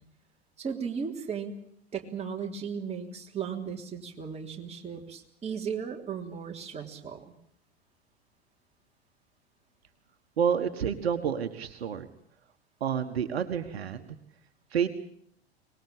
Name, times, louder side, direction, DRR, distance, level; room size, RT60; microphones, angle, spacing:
voice 1, 0.6-1.6 1.9-7.3, right 6 dB, 20° right, 1 dB, 3.5 m, -36 dB
voice 2, 10.4-12.1 12.8-14.1 14.7-14.9, right 7 dB, 70° right, 8 dB, 1.7 m, -29 dB
24.5 x 20.5 x 8.8 m, 0.67 s
figure-of-eight pair, 90°, 32 cm